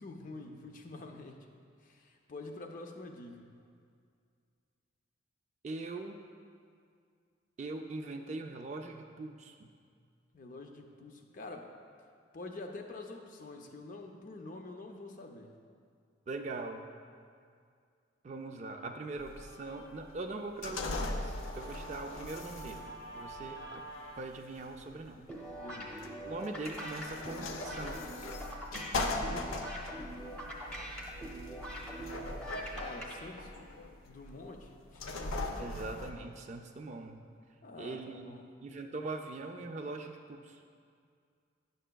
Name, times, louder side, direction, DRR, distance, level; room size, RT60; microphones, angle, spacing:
voice 1, 0.0-1.5 1.8-3.5 10.3-11.7 12.3-15.5 25.6-26.2 29.0-29.8 32.7-33.5 34.0-35.3 37.6-38.5, left 2 dB, 40° left, 3 dB, 0.5 m, -47 dB
voice 2, 5.6-6.2 7.6-9.7 16.3-16.9 18.2-23.8 24.2-25.3 26.3-28.3 35.6-37.2 37.8-38.3 38.6-40.6, right 3 dB, 35° right, 5 dB, 0.3 m, -42 dB
Guitar, 18.7-24.2, right 2 dB, 70° left, 0.9 m, -50 dB
sound 1, 19.2-36.1, left 2 dB, 90° left, 0.5 m, -40 dB
sound 2, 25.3-33.1, equal, 5° left, 0.8 m, -43 dB
9.9 x 6.5 x 2.2 m, 2.2 s
head